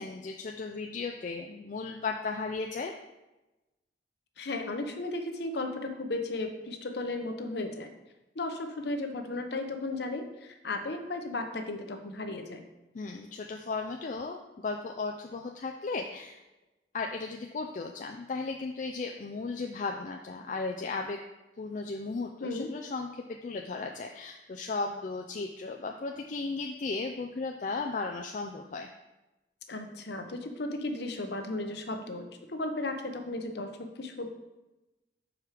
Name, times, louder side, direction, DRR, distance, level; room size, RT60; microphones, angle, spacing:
voice 1, 0.0-2.9 12.9-16.4 16.9-21.2 21.6-28.9, left 3 dB, 40° left, 3 dB, 0.4 m, -35 dB
voice 2, 4.4-7.9 8.4-12.6 22.4-22.7 29.7-34.3, left 2 dB, 60° left, 5 dB, 0.8 m, -35 dB
6.2 x 4.8 x 4.8 m, 1.0 s
head